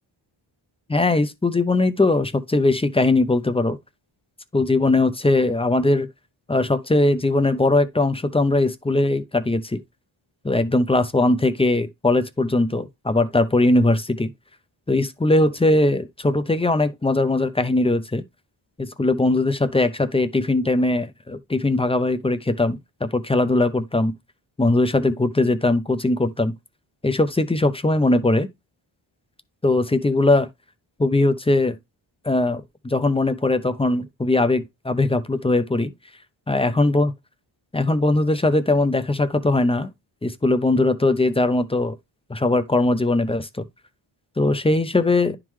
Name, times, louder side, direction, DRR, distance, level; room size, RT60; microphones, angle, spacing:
voice 1, 0.9-3.8 4.5-6.1 6.5-9.8 10.4-14.3 14.9-18.2 18.8-24.1 24.6-26.5 27.0-28.5 29.6-30.5 31.0-31.8 32.2-35.9 36.5-37.1 37.7-39.9 40.2-41.9 42.3-43.6 44.4-45.4, left 2 dB, 10° left, 0.5 m, -20 dB
11.0 x 3.7 x 3.1 m
wide cardioid pair, 160°, 48 cm